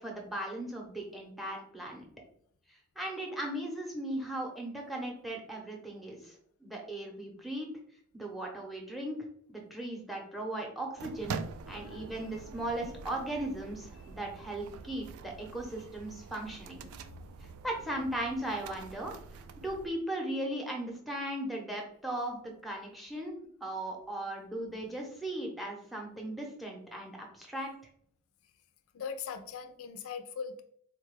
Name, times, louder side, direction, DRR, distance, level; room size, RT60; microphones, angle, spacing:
voice 1, 0.0-2.1 3.0-6.3 6.6-7.7 8.1-9.2 9.5-11.4 11.7-16.8 17.6-19.1 19.6-27.7, right 1 dB, ahead, 1 dB, 0.7 m, -37 dB
sound 1, 11.0-19.9, right 5 dB, 85° right, 0.3 m, -45 dB
voice 2, 11.7-12.4 14.0-14.1 17.1-17.6 28.4-28.5 28.9-30.6, left 6 dB, 70° left, 7 dB, 0.4 m, -42 dB
3.9 x 2.2 x 3.1 m, 0.64 s
head